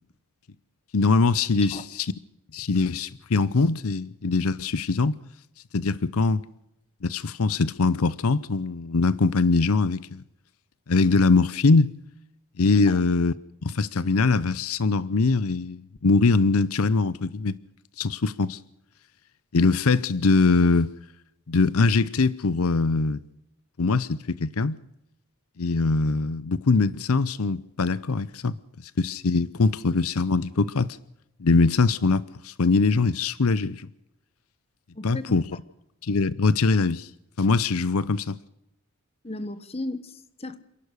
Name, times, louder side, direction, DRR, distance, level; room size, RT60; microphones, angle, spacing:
voice 1, 0.9-2.1 2.5-5.2 5.7-6.4 7.0-10.2 10.9-11.9 12.6-13.3 13.6-17.6 18.0-18.6 19.5-20.9 21.5-23.2 23.8-24.8 25.6-28.6 29.0-31.0 31.4-33.9 35.0-35.4 36.0-37.1 37.4-38.4, left 4 dB, 80° left, 0.7 m, -22 dB
voice 2, 39.2-40.6, left 2 dB, 25° left, 1.2 m, -35 dB
28.0 x 11.5 x 8.2 m
head